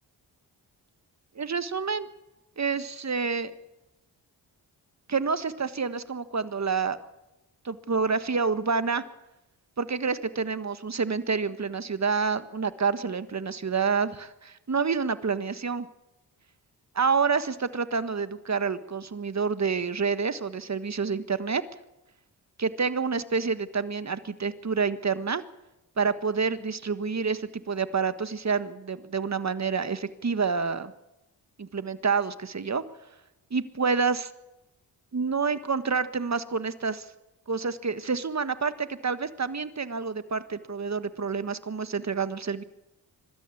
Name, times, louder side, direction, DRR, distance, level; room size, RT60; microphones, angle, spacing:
voice 1, 1.3-2.1 2.6-3.5 5.1-7.0 7.6-9.0 9.8-15.9 16.9-21.6 22.6-25.4 26.0-30.9 31.6-32.8 33.5-34.3 35.1-37.1 37.5-42.6, right 5 dB, 35° right, 12 dB, 1.5 m, -28 dB
23.5 x 13.0 x 8.6 m, 0.95 s
supercardioid pair, 45°, 45 cm